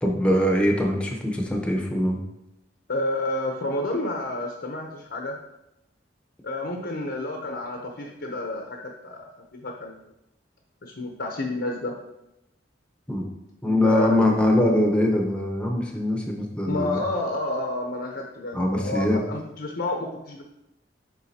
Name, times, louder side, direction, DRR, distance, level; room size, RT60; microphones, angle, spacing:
voice 1, 0.0-2.2 13.1-13.3 13.6-17.0 18.5-19.2, left 1 dB, 5° left, 1 dB, 0.8 m, -22 dB
voice 2, 2.9-5.4 6.4-10.0 10.8-11.9 13.6-14.3 16.6-20.4, left 2 dB, 65° left, 1 dB, 0.8 m, -30 dB
9.4 x 3.7 x 2.8 m, 0.89 s
head